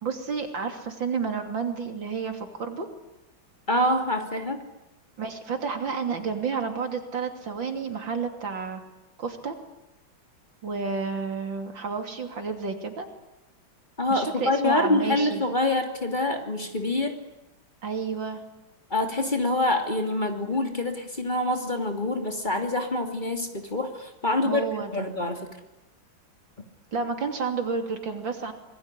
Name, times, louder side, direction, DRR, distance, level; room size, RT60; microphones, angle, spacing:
voice 1, 0.0-2.9 5.2-8.8 9.2-9.6 10.6-13.1 14.1-15.4 17.8-18.4 24.4-25.1 26.9-28.5, right 5 dB, 70° right, 5 dB, 3.7 m, -30 dB
voice 2, 3.7-4.6 14.0-17.2 18.9-24.6 24.9-25.5, left 2 dB, 25° left, 4 dB, 2.9 m, -26 dB
26.5 x 21.5 x 9.9 m, 0.93 s
omnidirectional pair, 2.2 m